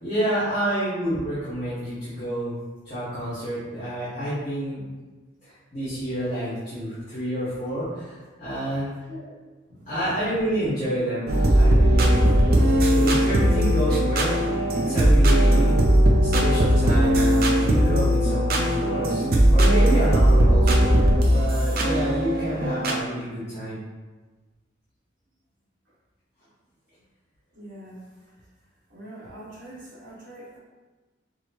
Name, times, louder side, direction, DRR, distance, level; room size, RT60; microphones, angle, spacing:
voice 1, 0.0-2.6 2.8-4.8 5.4-8.9 9.9-12.3 12.9-15.7 16.2-23.8, right 1 dB, 35° left, -13 dB, 1.5 m, -29 dB
voice 2, 8.7-9.2 9.7-10.3 27.5-28.0 28.9-30.6, right 1 dB, 70° right, -11 dB, 1.0 m, -43 dB
sound 1, 11.3-23.0, equal, 50° right, 0.4 m, -19 dB
6.0 x 2.1 x 2.9 m, 1.3 s
head